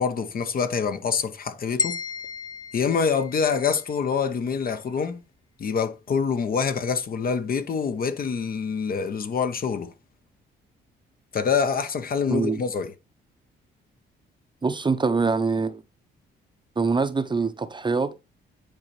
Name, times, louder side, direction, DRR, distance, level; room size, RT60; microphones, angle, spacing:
voice 1, 0.0-2.0 2.7-5.2 5.6-9.9 11.3-12.9, left 6 dB, 45° left, 0.9 m, -26 dB
sound 1, 1.8-4.0, left 4 dB, 20° left, 0.5 m, -32 dB
voice 2, 12.3-12.6 14.6-15.8 16.8-18.2, right 4 dB, 25° right, 0.7 m, -24 dB
9.6 x 4.3 x 3.2 m
cardioid pair, 90°, 20 cm